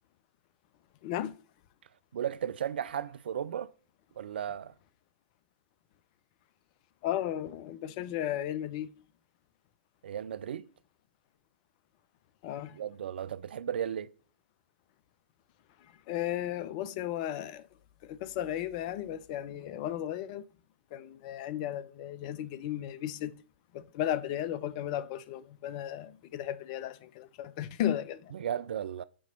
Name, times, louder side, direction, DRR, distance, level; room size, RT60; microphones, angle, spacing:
voice 1, 1.0-1.3 7.0-8.9 12.4-12.8 15.8-17.7 18.0-20.4 20.9-23.3 23.7-28.4, left 11 dB, 40° left, 0.6 m, -35 dB
voice 2, 2.1-3.7 4.2-4.7 10.0-10.7 12.8-14.1 28.3-29.0, right 9 dB, 65° right, 0.4 m, -35 dB
8.6 x 3.0 x 5.3 m
figure-of-eight pair, 120°, 6 cm